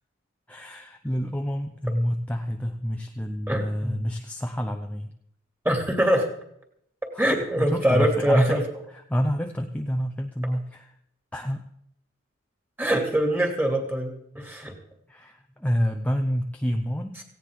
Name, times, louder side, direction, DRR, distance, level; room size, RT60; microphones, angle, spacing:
voice 1, 0.5-5.1 7.1-7.3 7.6-8.6 9.1-10.9 11.3-11.7 15.1-17.2, equal, 5° left, 4 dB, 0.7 m, -28 dB
voice 2, 3.5-4.0 5.6-6.3 7.2-8.7 12.8-14.7, right 1 dB, 10° right, 2 dB, 2.6 m, -23 dB
17.5 x 16.5 x 3.7 m, 0.74 s
head